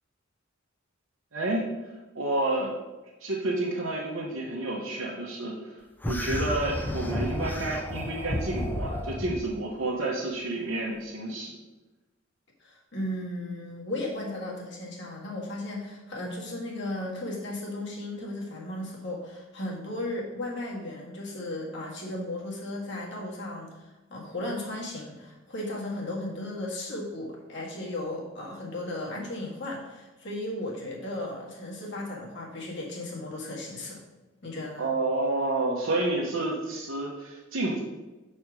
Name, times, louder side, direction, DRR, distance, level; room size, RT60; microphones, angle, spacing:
voice 1, 1.3-1.7 2.1-2.7 3.2-5.7 6.0-11.6 34.8-37.8, right 2 dB, 80° right, -5 dB, 1.0 m, -29 dB
sound 1, 6.0-9.5, left 1 dB, 10° left, 0.4 m, -32 dB
voice 2, 12.6-34.0 34.4-34.9, left 1 dB, 60° left, -3 dB, 1.7 m, -35 dB
6.7 x 4.3 x 4.8 m, 1.1 s
head